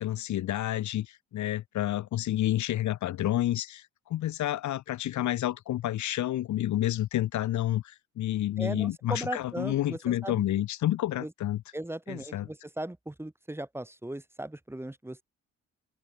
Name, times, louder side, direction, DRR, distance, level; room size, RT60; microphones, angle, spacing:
voice 1, 0.0-11.6 12.1-12.5, left 13 dB, 70° left, 1.1 m, -29 dB
voice 2, 8.6-10.4 11.2-11.3 11.7-15.2, right 1 dB, 10° right, 3.1 m, -37 dB
cardioid pair, 90°, 30 cm